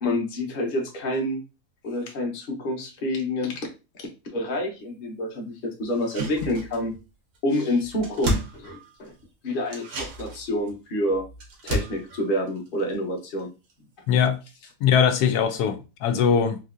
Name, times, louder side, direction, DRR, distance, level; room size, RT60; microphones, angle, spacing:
voice 1, 0.0-1.4 1.8-3.7 4.3-6.9 7.4-9.1 9.4-11.2 11.6-13.5, left 1 dB, 40° left, 0.9 m, -28 dB
sound 1, 5.9-7.1 7.3-7.4 7.7-9.2 9.7-13.4 13.7-13.8, right 1 dB, 75° right, 1.4 m, -33 dB
voice 2, 14.8-16.6, left 7 dB, 90° left, 1.1 m, -21 dB
3.7 x 2.6 x 2.4 m
omnidirectional pair, 1.6 m